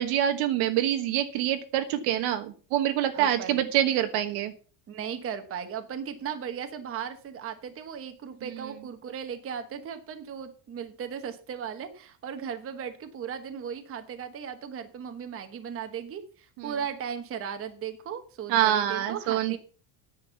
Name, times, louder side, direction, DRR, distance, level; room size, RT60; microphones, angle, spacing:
voice 1, 0.0-4.5 16.6-16.7 18.5-19.6, right 11 dB, 80° right, 7 dB, 1.3 m, -26 dB
voice 2, 3.1-3.6 4.9-19.6, right 7 dB, 30° right, 7 dB, 1.1 m, -37 dB
9.9 x 6.4 x 6.9 m, 0.39 s
cardioid pair, 160°, 45 cm